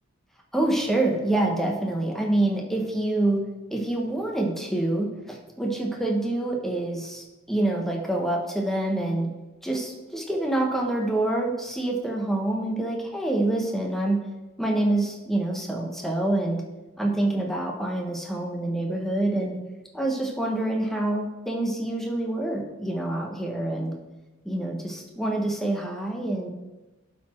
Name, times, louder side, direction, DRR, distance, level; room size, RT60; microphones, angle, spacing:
voice 1, 0.5-3.4 3.7-9.3 9.6-14.2 14.6-16.6 17.0-19.6 19.9-23.9 24.4-26.5, right 1 dB, ahead, 0 dB, 1.1 m, -26 dB
12.0 x 4.2 x 4.4 m, 1.1 s
head